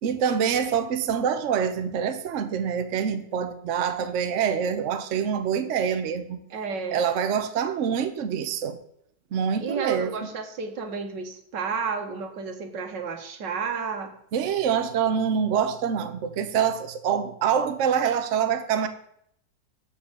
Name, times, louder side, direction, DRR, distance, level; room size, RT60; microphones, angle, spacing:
voice 1, 0.0-6.4 6.9-8.8 9.3-10.1 14.3-18.9, right 7 dB, 55° right, 0.9 m, -25 dB
voice 2, 6.5-7.0 9.6-14.2, right 5 dB, 75° right, 1.8 m, -31 dB
7.3 x 5.8 x 6.5 m
omnidirectional pair, 1.9 m